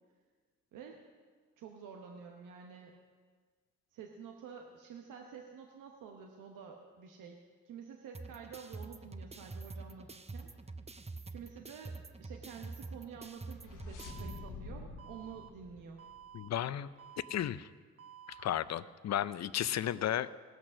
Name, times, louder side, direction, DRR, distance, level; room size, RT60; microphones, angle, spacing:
voice 1, 0.7-1.0 1.6-2.9 3.9-7.4 7.6-10.5 11.3-16.0, right 6 dB, 90° right, 2 dB, 1.0 m, -49 dB
sound 1, 8.1-14.4, right 3 dB, 20° right, 0.7 m, -46 dB
sound 2, 13.1-16.7, left 3 dB, 80° left, 1.3 m, -49 dB
Alarm, 14.0-14.5 15.0-15.5 16.0-16.5 17.0-17.5 18.0-18.5, right 9 dB, 50° right, 1.0 m, -52 dB
voice 2, 16.3-16.9 17.3-17.7 18.3-20.3, left 11 dB, 60° left, 16 dB, 0.5 m, -34 dB
18.5 x 6.3 x 6.2 m, 1.5 s
supercardioid pair, 55°, 31 cm